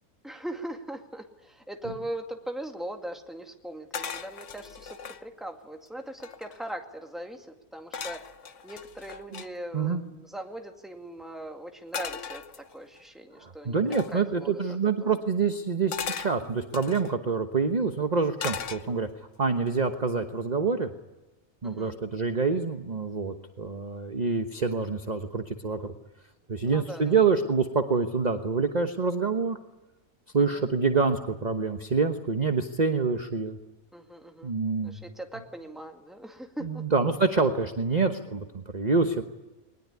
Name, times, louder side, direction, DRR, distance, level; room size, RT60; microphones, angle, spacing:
voice 1, 0.2-7.5 7.7-8.2 8.6-14.6 15.0-15.1 18.7-19.0 21.6-22.0 26.7-27.2 30.4-30.6 33.9-34.5 34.8-36.9, right 1 dB, ahead, 3 dB, 2.1 m, -40 dB
sound 1, 3.9-5.2 5.8-5.9 6.1-6.7 7.9-9.5 11.9-13.0 13.9-14.2 15.9-17.1 18.4-19.2 19.7-20.0, left 6 dB, 55° left, 1.3 m, -37 dB
voice 2, 13.4-19.1 19.4-20.9 21.6-25.8 26.5-29.6 30.3-33.6 34.4-35.0 36.6-39.2, right 4 dB, 30° right, 6 dB, 1.2 m, -26 dB
21.5 x 20.0 x 9.7 m, 1.0 s
omnidirectional pair, 1.6 m